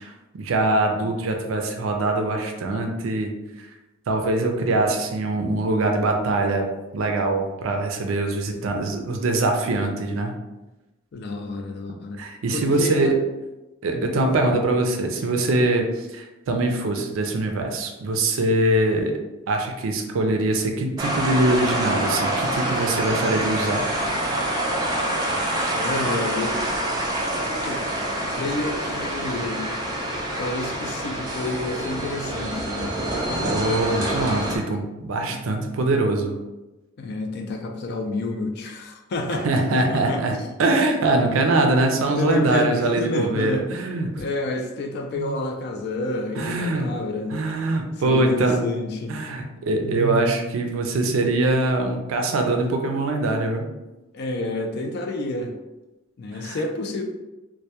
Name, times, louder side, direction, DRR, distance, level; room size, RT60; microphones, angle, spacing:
voice 1, 0.0-3.3 4.1-6.7 6.9-10.3 12.2-13.2 13.8-19.1 19.5-23.8 33.4-36.4 39.4-44.1 45.1-45.3 46.4-46.9 47.3-48.6 49.1-53.7 56.4-56.6, right 2 dB, 90° right, 3 dB, 0.4 m, -23 dB
voice 2, 11.1-12.2 12.5-13.1 13.9-14.5 25.7-26.6 27.6-27.8 28.1-29.8 30.4-33.0 35.2-36.1 37.0-39.5 39.7-40.5 42.1-43.8 44.2-47.3 48.0-49.2 49.8-50.5 54.1-55.5 56.2-57.0, left 2 dB, 55° left, 4 dB, 0.3 m, -29 dB
sound 1, 21.0-34.6, right 1 dB, 20° right, 0.3 m, -26 dB
2.1 x 2.1 x 2.8 m, 1.0 s
head